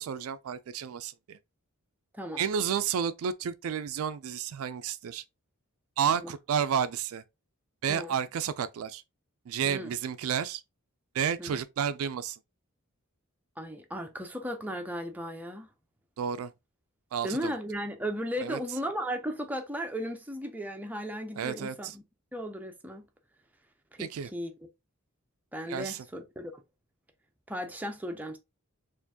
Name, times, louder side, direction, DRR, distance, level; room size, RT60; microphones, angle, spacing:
voice 1, 0.0-1.4 2.4-5.2 6.0-7.2 7.8-9.0 9.5-10.6 11.1-12.4 16.2-16.5 17.1-17.5 18.4-18.6 21.4-21.9 24.0-24.3 25.7-26.0, right 7 dB, 70° right, 0.3 m, -31 dB
voice 2, 13.6-15.7 17.2-22.0 22.3-23.1 23.9-24.5 25.5-26.6 27.5-28.4, equal, 5° right, 0.5 m, -36 dB
4.3 x 2.5 x 2.7 m
head